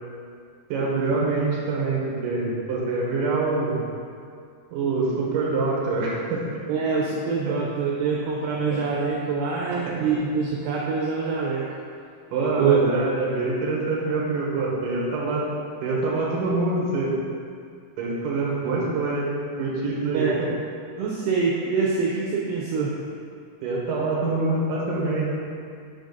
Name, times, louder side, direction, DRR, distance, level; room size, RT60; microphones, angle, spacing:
voice 1, 0.7-3.8 4.7-6.4 7.4-7.6 12.3-15.5 15.8-17.2 18.0-20.5 23.6-25.3, right 3 dB, 65° right, -5 dB, 2.4 m, -25 dB
voice 2, 6.7-11.6 12.6-12.8 20.1-20.4 21.0-22.9, right 5 dB, 80° right, -4 dB, 2.6 m, -25 dB
6.4 x 5.1 x 4.0 m, 2.3 s
omnidirectional pair, 5.2 m